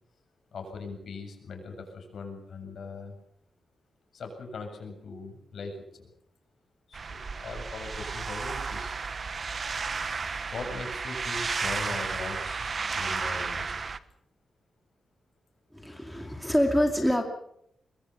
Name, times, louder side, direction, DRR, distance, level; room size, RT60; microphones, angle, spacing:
voice 1, 0.5-3.2 4.1-6.1 6.9-9.0 10.5-13.8, left 3 dB, 60° left, 5 dB, 7.4 m, -40 dB
sound 1, 6.9-14.0, right 4 dB, 35° right, 1.1 m, -33 dB
voice 2, 15.7-17.2, equal, ahead, 4 dB, 2.4 m, -25 dB
24.5 x 22.0 x 6.0 m, 0.71 s
wide cardioid pair, 155°, 0 cm